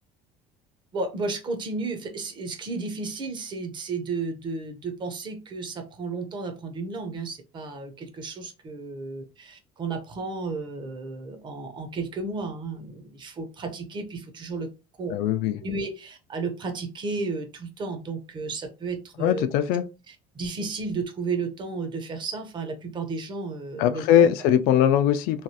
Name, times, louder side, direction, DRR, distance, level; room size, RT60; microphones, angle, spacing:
voice 1, 0.9-14.7 15.0-15.2 15.6-19.5 20.1-24.3, right 3 dB, 30° right, 0.6 m, -33 dB
voice 2, 15.1-15.6 19.2-19.8 23.8-25.4, left 10 dB, 75° left, 0.4 m, -21 dB
3.1 x 2.3 x 2.7 m
cardioid pair, 155°, 15 cm